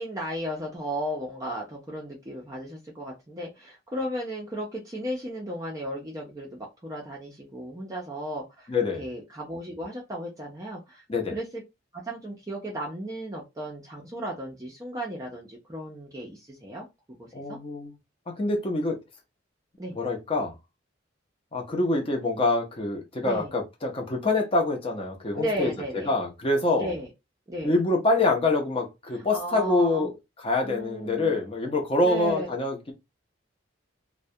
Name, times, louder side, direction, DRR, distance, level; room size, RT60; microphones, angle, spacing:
voice 1, 0.0-8.7 9.0-11.6 11.9-16.9 17.2-17.6 19.8-20.0 23.2-23.5 25.3-26.1 26.7-27.1 27.5-27.8 29.1-30.1 30.6-31.4 32.0-32.5, right 1 dB, 15° right, 0.4 m, -35 dB
voice 2, 8.7-9.0 11.1-11.3 17.3-17.9 18.3-19.0 19.9-20.5 21.5-26.9 27.6-30.1 30.4-32.9, left 2 dB, 30° left, 0.6 m, -25 dB
2.2 x 2.1 x 2.6 m
head